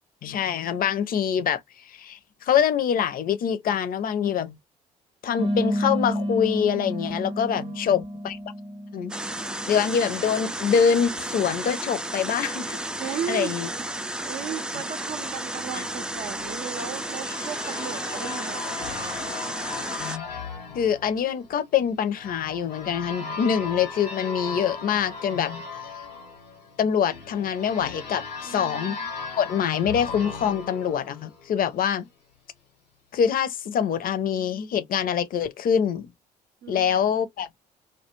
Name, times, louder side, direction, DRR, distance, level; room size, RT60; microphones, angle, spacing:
voice 1, 0.2-1.6 1.9-4.6 5.2-8.4 8.9-9.1 9.7-12.8 13.3-13.7 20.0-20.3 20.7-25.6 26.8-29.0 29.4-32.0 33.1-36.1 36.7-37.5, left 8 dB, 45° left, 0.6 m, -25 dB
sound 1, 5.4-10.3, equal, 30° right, 0.8 m, -30 dB
voice 2, 7.5-8.0 13.0-13.6 14.3-18.9 28.4-29.1 36.6-37.0, right 8 dB, 55° right, 0.6 m, -36 dB
sound 2, 9.1-20.2, right 1 dB, 5° right, 0.3 m, -33 dB
sound 3, 16.1-31.8, left 4 dB, 90° left, 1.0 m, -38 dB
2.2 x 2.2 x 2.9 m
hypercardioid pair, 50°, 20 cm